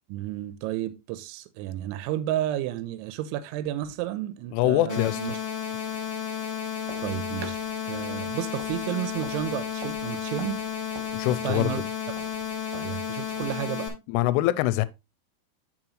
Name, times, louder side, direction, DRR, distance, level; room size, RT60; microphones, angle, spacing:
voice 1, 0.1-5.4 7.0-10.6 11.4-11.8 12.7-13.9, right 13 dB, 85° right, 3.0 m, -32 dB
voice 2, 4.5-5.2 11.1-11.8 14.1-14.9, left 16 dB, 90° left, 3.1 m, -23 dB
sound 1, 4.9-13.9, left 8 dB, 65° left, 1.4 m, -32 dB
sound 2, 6.9-13.7, right 4 dB, 60° right, 2.6 m, -46 dB
8.8 x 6.0 x 3.1 m
omnidirectional pair, 5.5 m